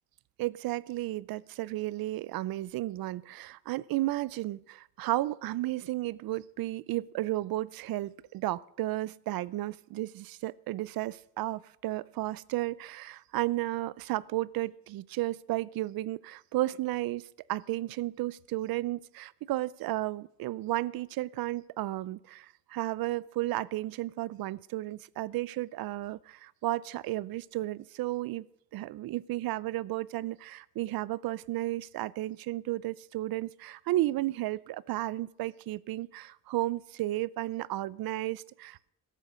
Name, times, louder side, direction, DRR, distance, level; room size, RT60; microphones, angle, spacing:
voice 1, 0.4-28.5 28.7-38.9, right 16 dB, 90° right, 0.5 m, -33 dB
13.5 x 11.5 x 6.2 m
cardioid pair, 140°, 34 cm